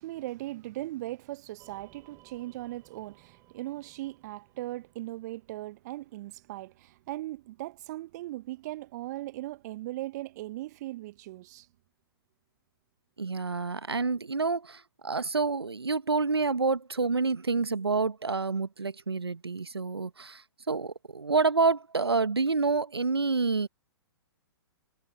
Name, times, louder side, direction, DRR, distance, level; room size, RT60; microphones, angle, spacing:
voice 1, 0.0-11.7, right 17 dB, 45° right, 0.8 m, -39 dB
sound 1, 1.6-6.0, right 15 dB, 25° right, 6.9 m, -61 dB
voice 2, 13.2-23.7, right 4 dB, 80° right, 1.1 m, -28 dB
figure-of-eight pair, 115°, 13 cm